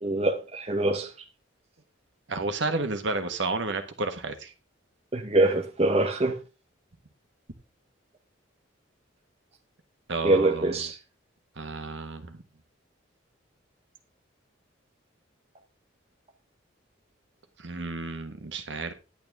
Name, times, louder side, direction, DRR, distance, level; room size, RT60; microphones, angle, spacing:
voice 1, 0.0-1.1 5.1-6.4 10.2-11.0, right 2 dB, 30° right, 0.8 m, -24 dB
voice 2, 2.3-4.5 10.1-10.8 11.6-12.4 17.6-18.9, right 3 dB, 65° right, 1.3 m, -31 dB
10.5 x 8.8 x 3.5 m
head